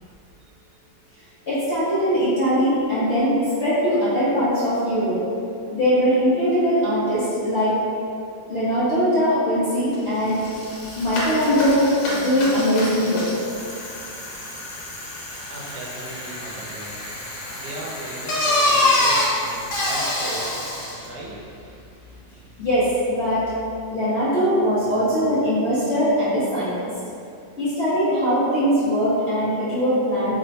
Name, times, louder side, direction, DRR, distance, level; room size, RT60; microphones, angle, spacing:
voice 1, 1.5-5.2 5.7-7.7 8.5-10.4 11.0-13.2 22.6-22.9 23.2-23.4 23.9-26.7 27.6-30.3, equal, 55° left, -12 dB, 0.8 m, -21 dB
Bicycle, 9.9-10.0 10.3-21.1, left 1 dB, 80° left, 1.4 m, -26 dB
voice 2, 15.5-17.0 17.5-20.6 21.0-21.4, right 2 dB, 75° right, -4 dB, 1.1 m, -37 dB
3.2 x 2.1 x 3.9 m, 2.6 s
omnidirectional pair, 1.9 m